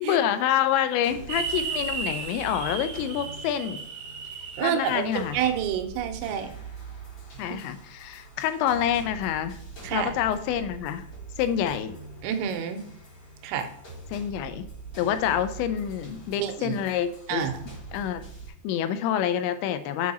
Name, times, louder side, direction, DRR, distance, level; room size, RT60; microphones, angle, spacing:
voice 1, 0.0-3.8 4.6-5.4 7.4-9.6 9.9-11.1 11.4-11.9 14.1-14.7 15.0-17.5 17.9-18.2 18.6-20.1, left 10 dB, 85° left, 11 dB, 2.8 m, -27 dB
sound 1, 1.0-18.5, right 4 dB, 30° left, 3.0 m, -43 dB
sound 2, 1.3-5.5, right 5 dB, 60° right, 1.7 m, -35 dB
voice 2, 4.6-6.5 7.5-7.6 9.8-10.1 12.2-12.8 13.4-13.7 16.4-16.8 17.3-17.6, right 8 dB, 85° right, 7 dB, 3.0 m, -28 dB
7.1 x 4.7 x 4.1 m, 0.70 s
omnidirectional pair, 5.3 m